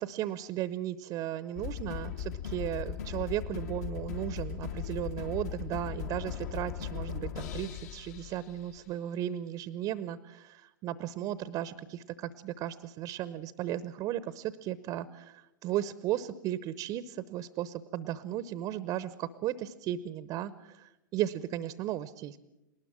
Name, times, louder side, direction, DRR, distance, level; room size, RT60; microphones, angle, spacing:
voice 1, 0.0-22.4, right 12 dB, 30° right, 16 dB, 0.8 m, -35 dB
sound 1, 1.6-8.9, left 9 dB, 50° left, 1.6 m, -38 dB
20.5 x 19.5 x 7.5 m, 0.94 s
figure-of-eight pair, 105°, 11 cm